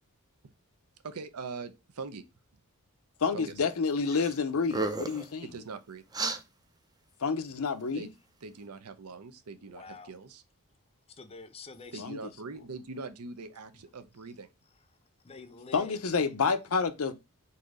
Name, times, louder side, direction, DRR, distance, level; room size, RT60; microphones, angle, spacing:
voice 1, 1.0-2.2 3.3-3.5 5.4-6.0 7.9-8.1 8.4-10.4 11.9-14.5, right 4 dB, 80° right, 0.7 m, -42 dB
voice 2, 3.2-5.5 7.2-8.1 12.0-12.2 15.7-17.1, left 5 dB, 70° left, 0.6 m, -29 dB
sound 1, 4.1-4.3 4.6-5.3 6.1-6.4, right 3 dB, 15° right, 0.5 m, -32 dB
voice 3, 9.7-10.1 11.1-12.0 15.2-16.0, left 4 dB, 25° left, 0.6 m, -47 dB
4.2 x 2.7 x 4.8 m
head